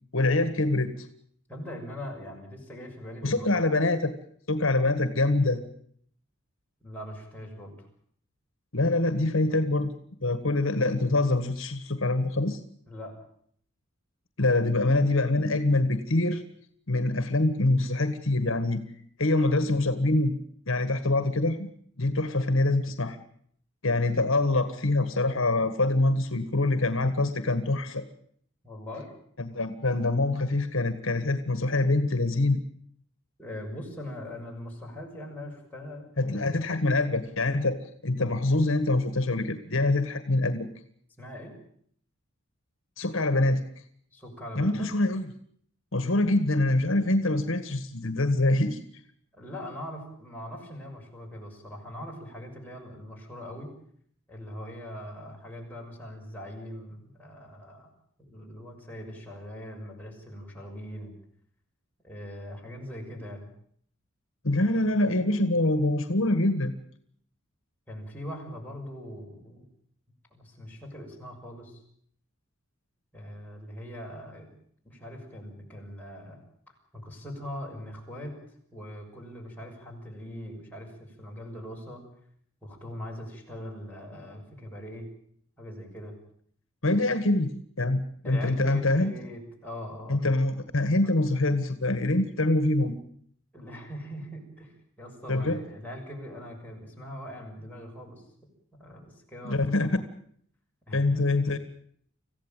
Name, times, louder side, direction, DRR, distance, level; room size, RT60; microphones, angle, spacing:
voice 1, 0.1-0.9 3.2-4.1 4.5-5.6 8.7-9.9 10.2-12.6 14.4-16.4 16.9-18.8 19.2-20.4 20.7-21.7 22.0-23.2 23.8-28.0 29.4-32.6 36.2-37.8 38.0-40.7 43.0-43.6 44.5-45.3 45.9-48.8 64.4-66.7 86.8-87.5 87.8-89.1 90.1-93.0 95.3-95.6 99.4-100.0 100.9-101.6, left 2 dB, 65° left, 10 dB, 1.7 m, -25 dB
voice 2, 1.5-3.8 6.8-7.9 12.9-13.1 28.6-29.1 33.4-36.7 41.2-41.6 44.1-44.9 49.3-53.7 54.3-57.9 58.2-61.1 62.0-63.5 67.9-69.7 70.3-71.8 73.1-74.5 74.8-76.4 76.9-78.3 78.7-82.0 82.6-85.1 85.6-86.1 88.2-90.3 93.5-98.2 98.8-99.9 100.9-101.3, equal, 10° left, -2 dB, 6.4 m, -41 dB
26.0 x 16.0 x 9.1 m, 0.65 s
head